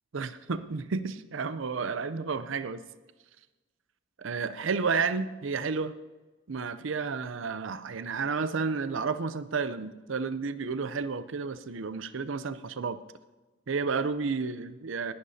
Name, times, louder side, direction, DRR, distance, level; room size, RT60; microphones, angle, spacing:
voice 1, 0.1-2.8 4.2-5.9 6.5-13.0 13.7-15.1, right 5 dB, 65° right, 13 dB, 0.6 m, -31 dB
18.5 x 11.0 x 2.8 m, 1.2 s
head